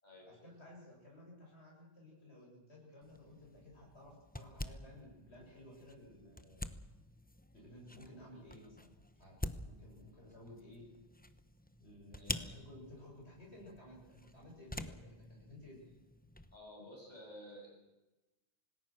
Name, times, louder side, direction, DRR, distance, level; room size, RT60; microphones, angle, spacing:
voice 1, 0.2-6.7 7.5-10.8 11.8-15.8, left 1 dB, 70° left, -3 dB, 8.2 m, -56 dB
sound 1, 3.0-16.6, left 1 dB, 10° left, 0.9 m, -48 dB
voice 2, 12.2-12.5 16.5-17.7, left 1 dB, 40° left, -2 dB, 8.3 m, -52 dB
26.5 x 19.5 x 6.3 m, 1.0 s
omnidirectional pair, 1.1 m